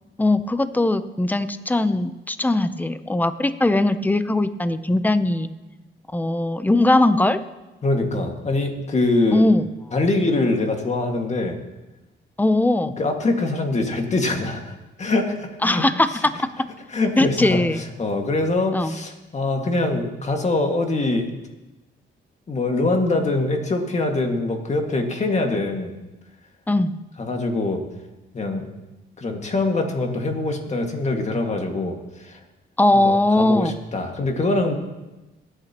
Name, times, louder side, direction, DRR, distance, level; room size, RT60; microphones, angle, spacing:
voice 1, 0.2-5.5 6.1-7.4 9.3-9.7 12.4-13.0 15.6-16.5 17.2-17.8 18.7-18.9 26.7-26.9 32.8-33.7, left 2 dB, 10° left, 12 dB, 0.7 m, -20 dB
voice 2, 7.8-9.4 9.9-11.6 13.0-15.8 16.9-21.4 22.5-25.9 27.2-27.8 28.3-28.7 29.2-32.4 32.9-34.7, left 2 dB, 35° left, 3 dB, 2.0 m, -23 dB
21.5 x 9.1 x 3.0 m, 1.1 s
cardioid pair, 90°, 20 cm